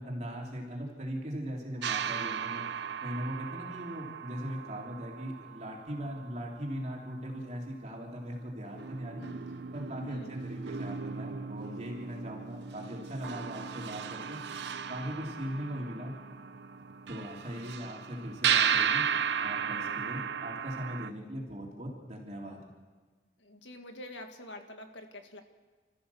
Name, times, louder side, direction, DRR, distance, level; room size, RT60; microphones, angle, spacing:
voice 1, 0.0-2.6 3.0-9.2 9.7-14.4 14.9-16.1 17.1-19.1 19.4-22.6, equal, 35° right, -2 dB, 3.5 m, -39 dB
sound 1, 1.8-6.7 8.2-8.3 8.7-21.1, right 7 dB, 70° right, 0.7 m, -35 dB
voice 2, 10.0-10.3 23.4-25.4, left 1 dB, 85° left, 5 dB, 2.0 m, -46 dB
27.5 x 14.0 x 7.1 m, 1.4 s
head